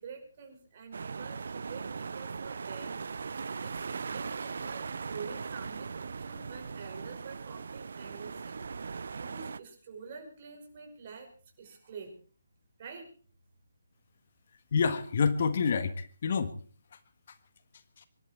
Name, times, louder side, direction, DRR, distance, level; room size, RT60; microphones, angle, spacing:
voice 1, 0.0-3.0 3.4-11.3 11.6-12.1 12.8-13.1, right 5 dB, 40° right, 4 dB, 5.5 m, -47 dB
sound 1, 0.9-9.6, right 5 dB, 60° right, 0.6 m, -39 dB
voice 2, 14.7-16.5 17.3-17.4 18.0-18.1, left 5 dB, 50° left, 12 dB, 1.5 m, -28 dB
24.5 x 12.0 x 4.4 m, 0.42 s
figure-of-eight pair, 150°, 0 cm